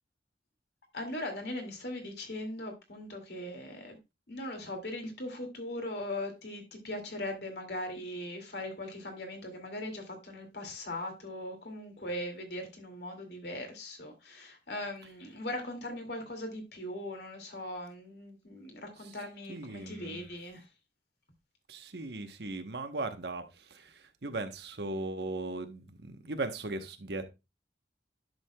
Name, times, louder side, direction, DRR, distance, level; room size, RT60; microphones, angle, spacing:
voice 1, 0.9-4.0 4.3-20.7, left 1 dB, 65° left, 2.4 m, -40 dB
voice 2, 19.5-20.2 21.7-27.2, right 2 dB, 70° right, 1.0 m, -38 dB
10.5 x 6.3 x 2.2 m
head